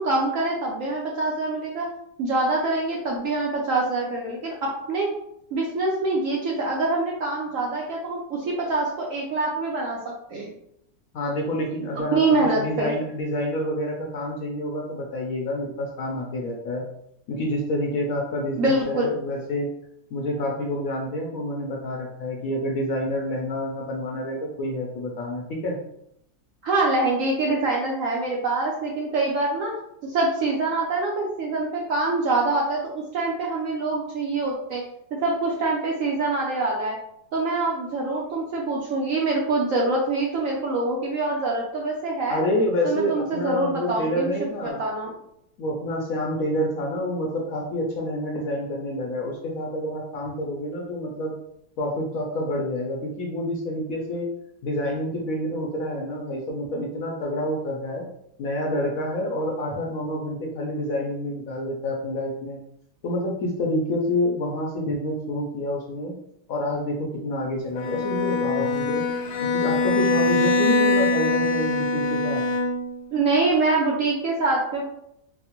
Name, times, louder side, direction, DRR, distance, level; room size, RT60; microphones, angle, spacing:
voice 1, 0.0-1.9 2.2-5.1 5.5-10.0 10.3-10.5 12.1-12.9 18.6-19.1 26.6-29.7 30.0-34.8 35.2-37.0 37.3-42.4 42.8-44.3 44.6-45.1 73.1-74.8, right 2 dB, 70° right, -2 dB, 0.8 m, -25 dB
voice 2, 11.1-16.8 17.3-19.7 20.1-25.8 42.3-44.8 45.6-51.3 51.8-54.3 54.6-58.1 58.4-62.6 63.0-66.1 66.5-69.0 69.5-72.4, left 1 dB, 70° left, 0 dB, 0.8 m, -28 dB
Bowed string instrument, 67.8-73.1, left 3 dB, 85° left, 1.3 m, -23 dB
4.1 x 2.0 x 2.9 m, 0.77 s
omnidirectional pair, 1.8 m